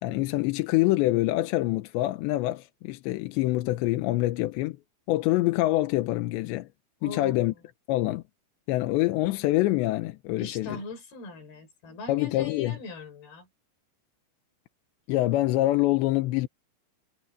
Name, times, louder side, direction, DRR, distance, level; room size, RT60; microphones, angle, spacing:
voice 1, 0.0-4.8 5.1-6.7 7.0-7.5 7.9-8.2 8.7-10.8 12.1-12.8 15.1-16.5, left 17 dB, 85° left, 3.1 m, -25 dB
voice 2, 7.0-7.5 10.4-13.5, left 3 dB, 55° left, 7.2 m, -41 dB
omnidirectional pair, 5.2 m